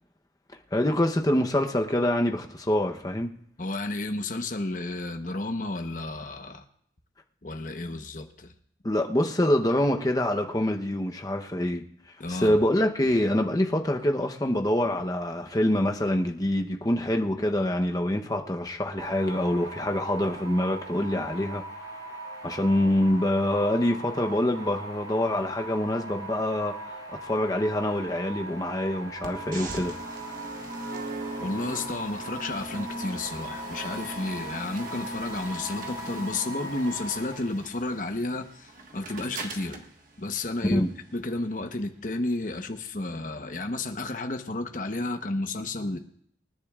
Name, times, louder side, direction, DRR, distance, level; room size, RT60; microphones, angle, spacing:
voice 1, 0.7-3.3 8.8-11.8 12.3-21.6 22.4-29.9 40.7-40.9, left 1 dB, 20° left, 0.8 m, -25 dB
voice 2, 3.6-6.6 7.4-8.5 12.2-12.6 31.4-39.8 40.2-40.9 41.1-46.0, left 2 dB, 45° left, 1.0 m, -32 dB
sound 1, 19.0-37.3, right 2 dB, 20° right, 6.3 m, -40 dB
sound 2, 29.2-41.2, right 1 dB, 45° right, 1.5 m, -40 dB
26.0 x 10.5 x 2.4 m
head